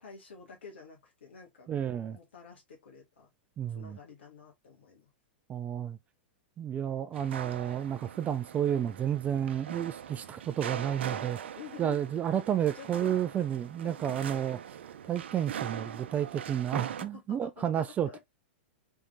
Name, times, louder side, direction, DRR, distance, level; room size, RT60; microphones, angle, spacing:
voice 1, 0.0-3.3 3.7-5.1 11.5-12.2 12.7-13.2 13.8-13.9 14.3-14.4 17.0-18.3, left 7 dB, 80° left, 1.9 m, -49 dB
voice 2, 1.7-2.2 3.6-4.0 5.5-6.0 6.6-14.6 15.0-18.1, right 9 dB, 25° right, 0.4 m, -31 dB
sound 1, 7.1-17.1, right 8 dB, 75° right, 0.6 m, -41 dB
4.4 x 3.5 x 2.6 m
hypercardioid pair, 115°, 6 cm